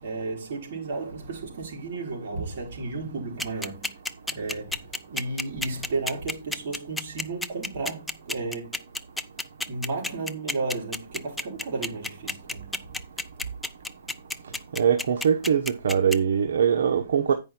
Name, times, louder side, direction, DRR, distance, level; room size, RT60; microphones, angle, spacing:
voice 1, 0.0-4.0 4.3-8.8 9.7-12.9, right 3 dB, 45° right, 3.9 m, -33 dB
sound 1, 3.4-16.2, left 2 dB, 5° left, 0.4 m, -30 dB
voice 2, 14.7-17.3, right 7 dB, 70° right, 1.1 m, -22 dB
9.1 x 5.6 x 4.4 m
hypercardioid pair, 165°, 0 cm